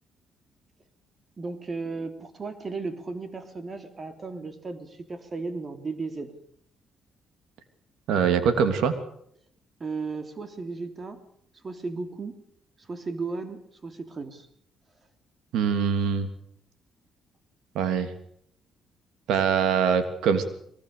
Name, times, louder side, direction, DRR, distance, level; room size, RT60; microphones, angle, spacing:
voice 1, 1.4-6.3 9.8-11.2 11.6-12.4 12.8-14.5, right 3 dB, 35° right, 8 dB, 3.3 m, -35 dB
voice 2, 8.1-8.9 15.5-16.3 17.7-18.1 19.3-20.4, right 7 dB, 85° right, 9 dB, 3.0 m, -23 dB
23.0 x 19.5 x 6.8 m, 0.67 s
cardioid pair, 90°, 0 cm